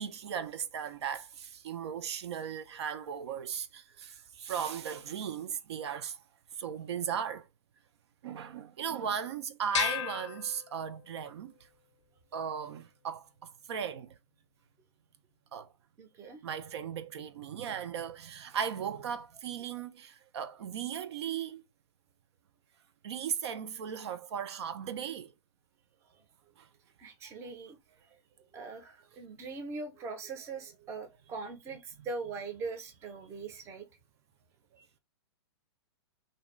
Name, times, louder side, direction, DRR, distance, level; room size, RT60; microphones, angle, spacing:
voice 1, 0.0-6.2 6.6-7.5 8.2-11.5 12.3-14.1 15.5-15.7 16.4-21.6 23.0-25.3 26.6-26.7, right 8 dB, 70° right, 0.4 m, -37 dB
sound 1, 9.7-11.2, left 10 dB, 80° left, 0.4 m, -34 dB
voice 2, 16.0-16.4 27.0-27.8 28.0-28.2 28.5-33.9 34.8-34.9, right 4 dB, 20° right, 0.5 m, -41 dB
2.6 x 2.3 x 3.0 m
hypercardioid pair, 145°, 15 cm